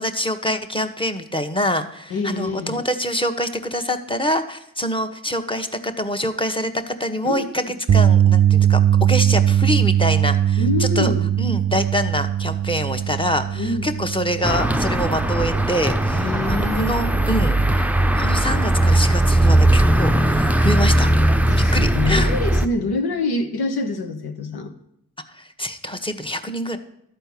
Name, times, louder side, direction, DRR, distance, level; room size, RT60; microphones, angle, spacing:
voice 1, 0.0-11.1 11.4-16.2 16.5-21.1 21.7-22.3 25.3-26.8, equal, 15° left, 7 dB, 1.2 m, -25 dB
voice 2, 2.1-2.8 7.2-7.5 10.6-11.2 13.6-13.9 16.1-17.4 21.5-24.7, left 3 dB, 85° left, 6 dB, 1.2 m, -26 dB
sound 1, 7.9-20.1 20.5-20.7 22.9-23.0, right 10 dB, 45° right, 0.5 m, -21 dB
sound 2, 14.4-22.7, right 1 dB, 5° right, 0.6 m, -18 dB
12.0 x 4.5 x 8.4 m, 0.74 s
cardioid pair, 45°, 37 cm